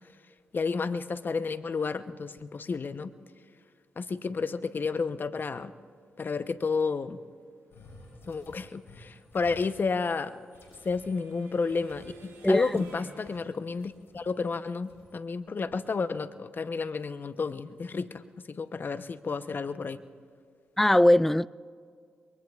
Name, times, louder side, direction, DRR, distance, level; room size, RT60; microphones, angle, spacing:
voice 1, 0.5-3.1 4.0-5.7 6.2-7.2 8.2-10.4 10.8-20.0, left 4 dB, 45° left, 0.8 m, -31 dB
sound 1, 7.7-13.5 13.8-15.2, left 1 dB, 65° left, 5.8 m, -54 dB
sound 2, 10.2-13.4, right 3 dB, 80° right, 3.4 m, -53 dB
voice 2, 12.4-12.8 20.8-21.5, left 1 dB, 5° left, 0.3 m, -21 dB
26.5 x 22.5 x 2.4 m
supercardioid pair, 45°, 5 cm